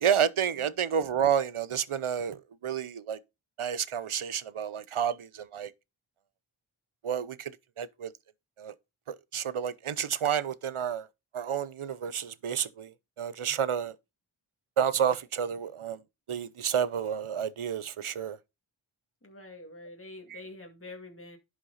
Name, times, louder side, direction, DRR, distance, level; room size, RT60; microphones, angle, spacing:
voice 1, 0.0-3.2 3.6-5.7 7.0-7.5 7.8-8.1 8.6-8.7 9.1-11.1 11.3-12.9 13.2-13.9 14.8-16.0 16.3-18.4, right 8 dB, 85° right, 0.8 m, -30 dB
voice 2, 19.2-21.4, left 2 dB, 25° left, 2.2 m, -46 dB
11.0 x 6.1 x 4.1 m
wide cardioid pair, 40°, 49 cm